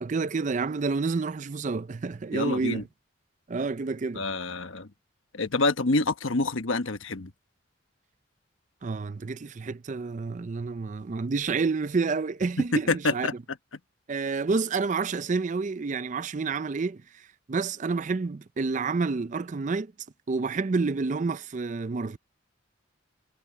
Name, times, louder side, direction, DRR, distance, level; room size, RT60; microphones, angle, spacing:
voice 1, 0.0-2.9 3.5-4.2 8.8-13.3 14.1-17.2 17.5-19.9 20.3-22.2, right 4 dB, 40° right, 0.4 m, -29 dB
voice 2, 2.3-2.8 4.1-4.9 5.3-7.3 12.7-13.3, left 3 dB, 80° left, 1.2 m, -27 dB
head